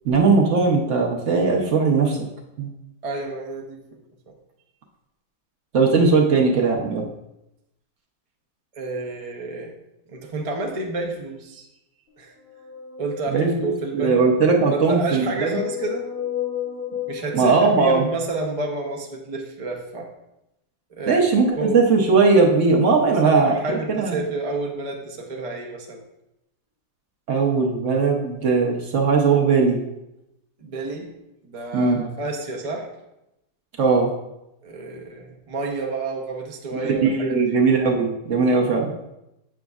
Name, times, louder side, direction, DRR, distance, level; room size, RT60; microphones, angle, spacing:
voice 1, 0.0-2.3 2.6-2.7 5.7-7.1 13.3-15.6 17.3-18.0 21.1-23.6 23.9-24.2 27.3-29.8 31.7-32.0 33.8-34.1 36.7-38.9, right 4 dB, 55° right, 0 dB, 1.0 m, -19 dB
voice 2, 3.0-4.0 4.3-4.4 8.7-9.7 10.1-11.7 12.2-12.3 13.0-14.3 14.7-16.1 17.1-20.1 20.9-21.2 21.6-21.8 23.1-26.0 30.6-31.1 31.4-32.9 34.6-37.6, right 2 dB, 40° right, 1 dB, 0.5 m, -30 dB
sound 1, 12.2-13.9 14.7-18.6, left 10 dB, 40° left, 0.9 m, -33 dB
7.7 x 6.1 x 2.4 m, 0.88 s
omnidirectional pair, 1.8 m